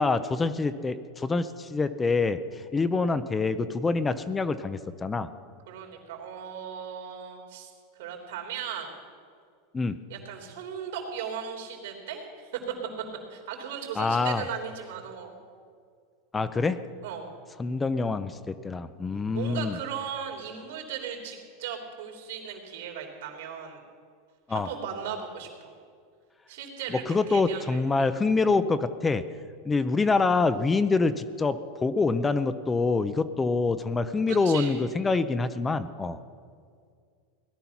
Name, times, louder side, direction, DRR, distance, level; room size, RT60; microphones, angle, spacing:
voice 1, 0.0-5.3 9.7-10.0 14.0-14.4 16.3-16.8 17.6-19.8 24.5-24.7 26.9-29.2 29.6-36.2, left 3 dB, 15° left, 12 dB, 0.5 m, -26 dB
voice 2, 5.7-7.7 8.0-8.9 10.1-12.6 13.3-15.4 17.0-17.3 19.3-23.8 24.5-25.8 26.5-28.2 34.3-34.8, right 7 dB, 80° right, 1 dB, 3.3 m, -37 dB
17.5 x 11.0 x 5.9 m, 2.1 s
supercardioid pair, 145°, 0 cm